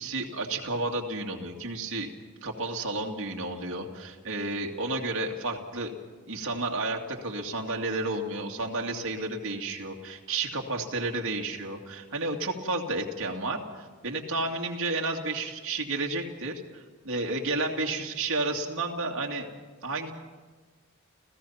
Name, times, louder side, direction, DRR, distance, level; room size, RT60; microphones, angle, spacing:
voice 1, 0.0-2.1 2.4-5.9 6.3-19.5 19.8-20.1, right 2 dB, 60° right, 0 dB, 2.4 m, -31 dB
30.0 x 15.5 x 5.8 m, 1.4 s
head